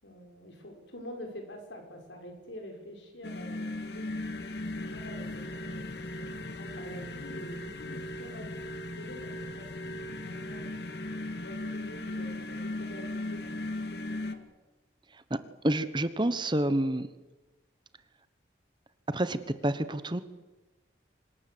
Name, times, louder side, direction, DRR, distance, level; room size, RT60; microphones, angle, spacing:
voice 1, 0.0-4.1 4.7-10.8 11.4-13.6 13.9-14.4, equal, 85° left, 3 dB, 6.2 m, -47 dB
sound 1, 3.2-14.4, left 1 dB, 60° left, 2.0 m, -37 dB
voice 2, 15.6-17.1 19.1-20.2, right 1 dB, 25° right, 13 dB, 1.1 m, -28 dB
25.5 x 20.0 x 8.0 m, 1.1 s
head